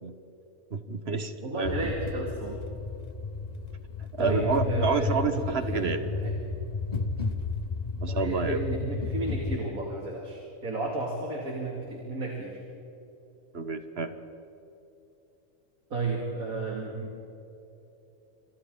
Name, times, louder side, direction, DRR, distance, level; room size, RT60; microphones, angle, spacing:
voice 1, 0.7-1.7 4.0-6.0 8.0-8.6 13.5-14.1, right 4 dB, 50° right, 8 dB, 1.6 m, -29 dB
voice 2, 1.4-2.6 4.2-6.3 8.0-12.6 15.9-17.2, right 2 dB, 85° right, -1 dB, 3.2 m, -33 dB
sound 1, 1.6-9.6, left 4 dB, 35° left, 0.9 m, -32 dB
29.5 x 27.5 x 3.9 m, 3.0 s
omnidirectional pair, 1.4 m